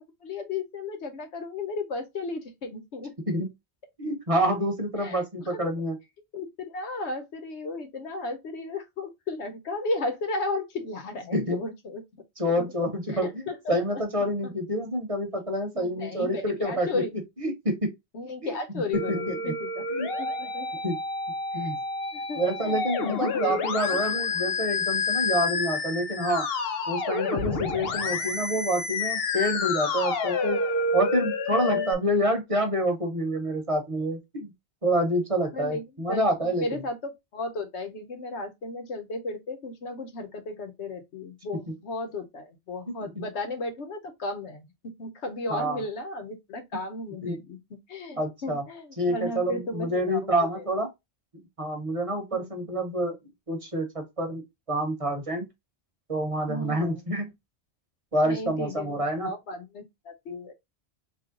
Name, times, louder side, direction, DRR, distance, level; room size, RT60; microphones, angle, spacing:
voice 1, 0.0-3.1 5.0-5.7 6.3-12.0 12.5-12.7 13.1-14.5 15.7-17.1 18.1-19.8 20.2-20.7 21.5-21.7 22.1-23.5 27.8-28.0 31.5-31.9 35.5-50.6 52.3-52.5 56.5-57.0 58.2-60.5, left 2 dB, 85° left, 1.2 m, -35 dB
voice 2, 4.0-6.0 11.3-11.6 12.4-17.0 17.4-17.9 18.4-18.8 19.1-19.5 19.9-20.1 20.8-21.0 21.5-21.8 22.4-26.5 26.9-30.6 30.9-34.5 34.8-36.8 45.5-45.8 47.2-47.3 48.2-48.6 49.0-50.9 51.6-53.2 53.5-54.4 54.7-55.4 56.1-57.3 58.1-59.3, equal, 35° right, 0.9 m, -27 dB
Musical instrument, 18.9-31.9, left 4 dB, 65° left, 0.9 m, -29 dB
3.2 x 2.7 x 3.7 m
omnidirectional pair, 1.1 m